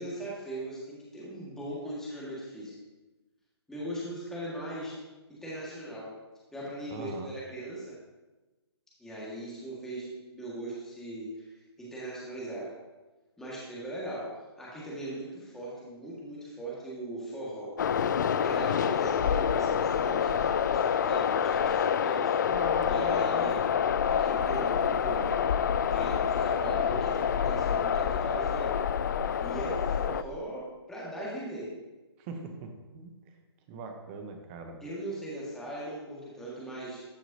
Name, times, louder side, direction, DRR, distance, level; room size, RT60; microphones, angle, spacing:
voice 1, 0.0-2.7 3.7-5.0 5.3-6.1 6.5-7.9 9.0-11.5 11.8-12.7 13.4-14.3 14.6-17.7 18.4-22.3 22.9-23.6 24.0-25.6 25.9-28.8 29.4-31.7 34.8-37.0, right 1 dB, 5° left, -7 dB, 1.9 m, -39 dB
voice 2, 6.9-7.3 22.4-23.6 32.2-33.1 33.7-34.8, right 4 dB, 25° right, 5 dB, 1.0 m, -41 dB
sound 1, 17.8-30.2, left 8 dB, 45° left, 0.4 m, -27 dB
13.0 x 6.0 x 2.8 m, 1.1 s
figure-of-eight pair, 140°, 14 cm